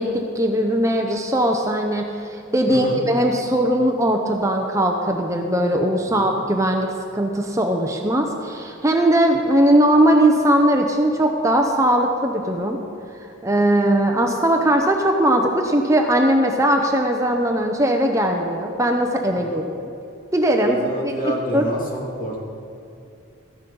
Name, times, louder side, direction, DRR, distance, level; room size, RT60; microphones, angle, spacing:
voice 1, 0.0-12.8 13.4-19.6 20.3-21.6, right 1 dB, 15° right, 3 dB, 0.7 m, -19 dB
voice 2, 2.7-3.0 6.0-6.3 19.3-19.6 20.6-22.4, equal, 45° left, -2 dB, 2.3 m, -29 dB
13.5 x 10.5 x 5.4 m, 2.7 s
head